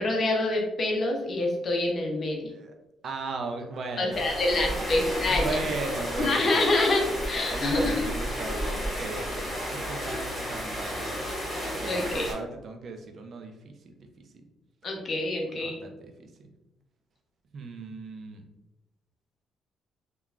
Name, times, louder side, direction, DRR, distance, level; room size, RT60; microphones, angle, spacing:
voice 1, 0.0-2.4 4.0-5.6 6.2-8.0 11.8-12.3 14.8-15.8, left 2 dB, 45° left, 1 dB, 0.6 m, -26 dB
voice 2, 3.0-4.9 5.2-6.6 7.5-11.2 11.8-14.3 15.6-16.3 17.5-18.4, right 3 dB, 60° right, 5 dB, 0.4 m, -37 dB
sound 1, 4.1-12.3, equal, 10° left, 1.4 m, -32 dB
3.0 x 2.2 x 2.4 m, 0.95 s
cardioid pair, 90°, 0 cm